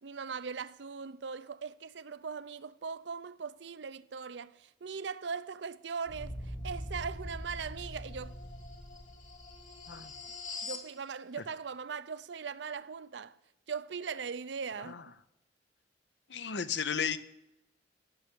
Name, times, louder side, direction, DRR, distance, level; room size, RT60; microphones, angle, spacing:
voice 1, 0.0-8.3 10.6-13.4 13.7-15.0, right 5 dB, 70° right, 0.6 m, -40 dB
sound 1, 6.1-10.9, left 1 dB, 45° left, 2.4 m, -42 dB
voice 2, 16.3-17.2, left 7 dB, 70° left, 0.8 m, -34 dB
16.0 x 6.7 x 8.3 m
head